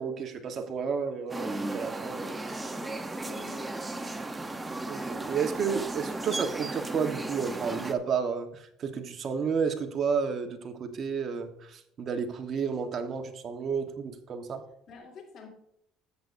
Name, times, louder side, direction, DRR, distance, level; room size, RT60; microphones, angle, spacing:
voice 1, 0.0-2.2 4.8-14.6, right 6 dB, 45° right, 5 dB, 1.3 m, -31 dB
sound 1, 1.3-7.9, right 2 dB, 15° right, 0.9 m, -35 dB
voice 2, 2.1-2.8 3.2-4.0 14.9-15.5, left 4 dB, 55° left, 1 dB, 3.2 m, -48 dB
13.5 x 8.1 x 2.7 m, 0.74 s
cardioid pair, 105°, 0 cm